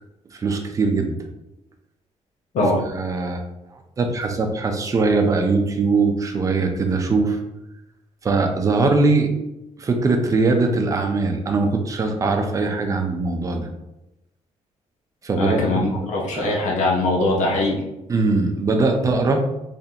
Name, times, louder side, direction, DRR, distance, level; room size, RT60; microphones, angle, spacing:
voice 1, 0.4-1.2 2.9-3.4 4.0-7.4 8.2-9.3 9.8-13.7 15.2-16.1 16.3-16.6 18.1-19.4, right 3 dB, 25° right, 4 dB, 0.5 m, -21 dB
voice 2, 15.4-17.8, left 2 dB, 85° left, -2 dB, 0.9 m, -21 dB
3.8 x 3.3 x 2.8 m, 0.91 s
cardioid pair, 155°, 12 cm